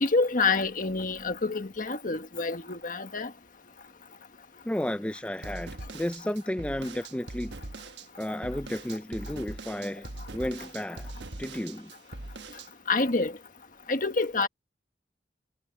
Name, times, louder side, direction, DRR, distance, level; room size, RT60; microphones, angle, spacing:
voice 1, 0.0-3.3 12.9-13.3 13.9-14.5, left 3 dB, 50° left, 1.5 m, -27 dB
voice 2, 4.6-7.5 8.2-11.1 11.4-11.9, left 1 dB, 5° left, 0.4 m, -33 dB
sound 1, 5.4-12.7, right 2 dB, 75° right, 1.3 m, -41 dB
head